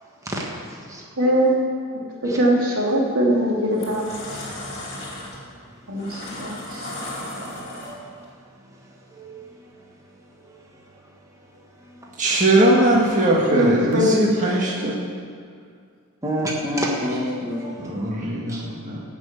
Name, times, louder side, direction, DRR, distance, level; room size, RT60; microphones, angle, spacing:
voice 1, 1.2-1.6 1.9-4.4 5.9-6.9 13.5-14.1, equal, 75° right, -2 dB, 2.9 m, -22 dB
sound 1, 2.9-3.1 3.6-8.2, left 1 dB, 30° left, 3.0 m, -35 dB
voice 2, 12.2-15.0 16.9-17.2 17.8-19.0, right 1 dB, 35° right, -4 dB, 1.6 m, -20 dB
voice 3, 16.2-17.7 18.5-18.6, equal, 15° right, -2 dB, 1.5 m, -26 dB
16.0 x 6.3 x 8.3 m, 2.1 s
head